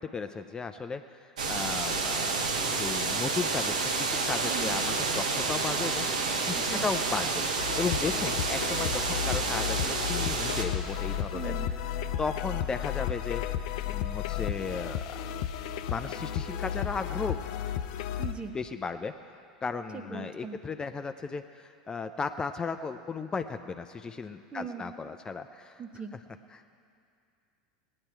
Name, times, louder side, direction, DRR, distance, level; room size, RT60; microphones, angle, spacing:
voice 1, 0.0-2.4 2.7-7.5 7.8-11.5 12.2-13.4 13.9-15.2 15.9-17.4 18.5-19.1 19.6-25.8 26.5-26.7, left 5 dB, 20° left, 8 dB, 0.5 m, -35 dB
sound 1, 1.4-10.6, right 4 dB, 75° right, 1.2 m, -29 dB
voice 2, 4.4-4.7 6.5-6.8 11.3-11.7 18.2-18.6 19.9-20.6 24.5-24.9 25.8-26.1, right 6 dB, 25° right, 7 dB, 1.1 m, -40 dB
sound 2, 7.6-18.3, left 9 dB, 60° left, 0.6 m, -33 dB
18.5 x 9.8 x 4.5 m, 2.4 s
hypercardioid pair, 80°, 4 cm